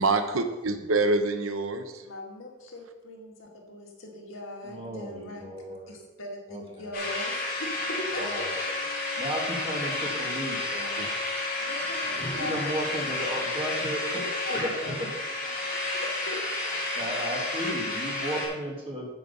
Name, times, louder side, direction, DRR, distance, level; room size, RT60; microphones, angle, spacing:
voice 1, 0.0-2.0 11.0-11.1, right 3 dB, 85° right, 8 dB, 0.9 m, -26 dB
voice 2, 2.0-8.7 11.6-12.9 14.1-16.8, left 1 dB, 75° left, 0 dB, 2.1 m, -40 dB
voice 3, 4.7-5.9 6.5-6.9 8.2-8.5 9.2-11.0 12.4-14.2 14.5-15.1 17.0-19.1, right 1 dB, 25° right, -1 dB, 1.9 m, -34 dB
sound 1, 6.9-18.5, left 2 dB, 45° left, 3.3 m, -31 dB
8.2 x 7.5 x 5.4 m, 1.1 s
head